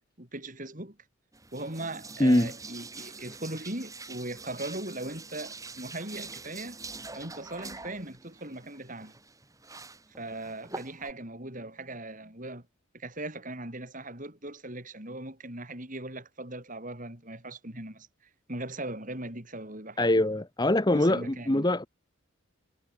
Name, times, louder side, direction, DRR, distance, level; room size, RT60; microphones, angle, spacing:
voice 1, 0.2-1.0 1.5-6.8 7.1-9.2 10.2-12.6 12.9-18.1 18.5-20.3 20.9-21.7, right 1 dB, 40° right, 6.3 m, -39 dB
sound 1, 1.3-11.1, right 3 dB, 15° right, 3.7 m, -45 dB
voice 2, 2.2-2.5 20.0-21.9, left 1 dB, 20° left, 1.0 m, -23 dB
head